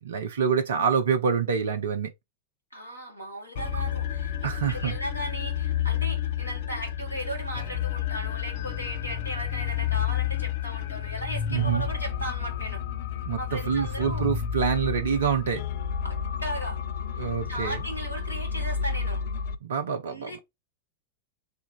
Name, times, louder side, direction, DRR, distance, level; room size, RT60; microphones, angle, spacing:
voice 1, 0.0-2.1 3.7-3.8 4.4-5.0 11.5-11.9 13.2-15.7 17.2-17.8 19.6-20.4, right 6 dB, 65° right, 0.6 m, -26 dB
voice 2, 2.7-12.8 13.4-14.2 16.0-16.8 17.1-19.2 20.0-20.4, equal, 85° right, 1.9 m, -36 dB
sound 1, 3.6-19.6, left 8 dB, 55° left, 0.4 m, -31 dB
3.3 x 2.4 x 3.5 m
figure-of-eight pair, 90°, 0 cm